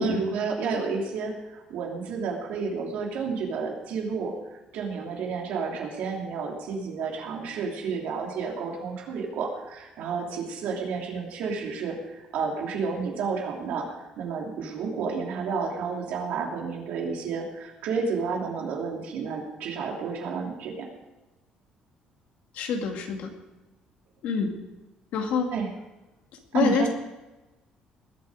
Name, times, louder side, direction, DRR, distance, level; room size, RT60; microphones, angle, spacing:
voice 1, 0.0-20.9 25.5-25.7 26.5-26.9, right 5 dB, 75° right, -1 dB, 3.1 m, -31 dB
voice 2, 22.5-23.3 24.2-24.5 25.1-25.5 26.5-26.9, left 5 dB, 70° left, 3 dB, 2.3 m, -26 dB
20.0 x 8.7 x 5.0 m, 1.1 s
cardioid pair, 160°, 3 cm